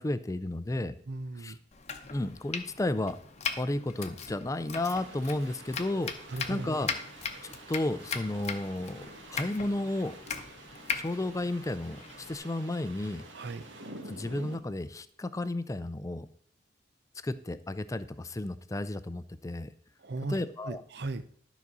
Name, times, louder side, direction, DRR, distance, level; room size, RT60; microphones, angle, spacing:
voice 1, 0.0-0.9 1.4-1.5 2.1-3.2 3.6-6.1 6.5-6.9 7.4-10.2 10.9-13.2 14.1-16.3 17.2-19.7 20.3-20.8, left 1 dB, 20° left, 13 dB, 0.4 m, -33 dB
voice 2, 1.1-1.6 6.3-6.7 13.3-13.6 20.0-20.4 20.6-21.2, right 2 dB, 60° right, 13 dB, 0.6 m, -36 dB
Domestic sounds home sounds, 1.7-12.4, left 6 dB, 35° left, 0.8 m, -39 dB
sound 1, 4.8-14.6, right 2 dB, 90° right, 1.6 m, -49 dB
12.0 x 4.1 x 6.0 m, 0.62 s
head